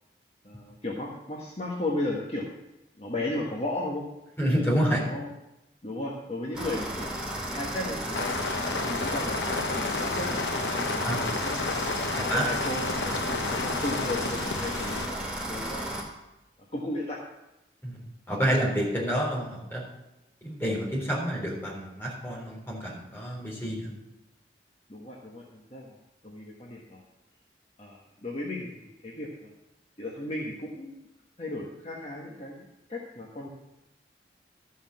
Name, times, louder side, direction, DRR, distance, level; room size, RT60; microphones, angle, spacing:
voice 1, 0.4-2.5 3.0-4.1 4.7-5.3 5.8-8.3 8.7-11.6 12.2-13.1 13.5-15.8 16.7-17.2 24.9-26.0 26.2-27.0 27.8-29.5 30.0-30.9 31.4-33.5, left 1 dB, 35° left, -2 dB, 1.3 m, -35 dB
voice 2, 4.4-5.0 11.0-11.1 12.3-12.4 17.8-18.0 18.3-19.8 20.4-23.9, equal, 15° left, -3 dB, 3.5 m, -28 dB
sound 1, 6.5-16.0, right 1 dB, 5° right, 2.3 m, -34 dB
sound 2, 8.1-15.1, left 4 dB, 90° left, 0.8 m, -31 dB
13.0 x 5.7 x 7.5 m, 0.96 s
head